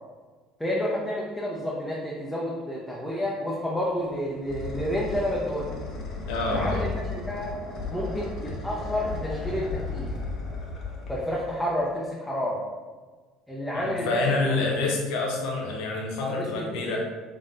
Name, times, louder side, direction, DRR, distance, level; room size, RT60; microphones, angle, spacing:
voice 1, 0.6-5.8 6.5-7.5 7.9-10.1 11.1-12.6 13.5-14.8 16.2-17.0, left 1 dB, 5° left, -5 dB, 0.7 m, -30 dB
sound 1, 3.9-11.8, left 3 dB, 50° left, 0.9 m, -35 dB
voice 2, 6.3-6.8 13.7-17.0, left 3 dB, 65° left, 0 dB, 0.6 m, -27 dB
3.7 x 3.5 x 2.7 m, 1.4 s
hypercardioid pair, 65°, 0 cm